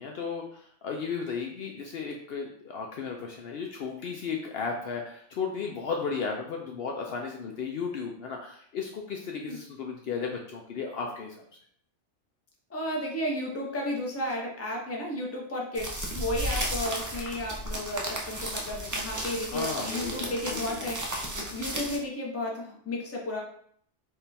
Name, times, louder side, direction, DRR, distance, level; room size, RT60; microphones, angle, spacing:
voice 1, 0.0-11.3 19.5-20.9, left 5 dB, 65° left, 1 dB, 0.7 m, -35 dB
voice 2, 12.7-23.4, left 1 dB, 15° left, -1 dB, 0.6 m, -33 dB
sound 1, 15.7-22.0, right 1 dB, 25° right, 0.4 m, -34 dB
3.6 x 2.4 x 4.1 m, 0.63 s
omnidirectional pair, 1.2 m